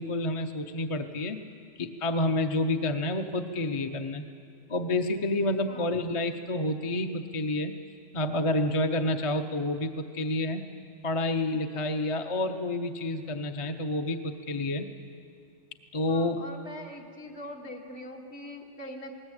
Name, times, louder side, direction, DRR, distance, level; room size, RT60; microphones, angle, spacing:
voice 1, 0.0-1.4 1.8-4.3 4.7-7.7 8.1-10.6 11.0-14.9 15.9-16.4, left 2 dB, 30° left, 6 dB, 0.8 m, -29 dB
voice 2, 16.1-19.1, left 1 dB, 65° left, 0 dB, 2.3 m, -42 dB
20.0 x 19.0 x 8.8 m, 2.3 s
omnidirectional pair, 1.2 m